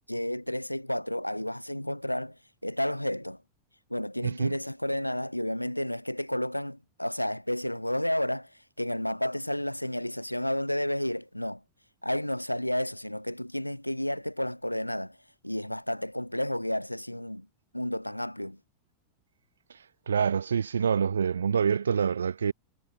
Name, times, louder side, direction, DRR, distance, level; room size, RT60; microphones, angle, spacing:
voice 1, 0.1-2.4 2.6-3.4 3.9-8.5 8.8-11.6 12.0-15.2 15.4-17.5 17.7-18.6, left 1 dB, 90° left, 0.6 m, -31 dB
voice 2, 4.2-4.6 19.7-19.8 20.1-22.5, right 7 dB, 70° right, 0.4 m, -26 dB
figure-of-eight pair, 90°, 0 cm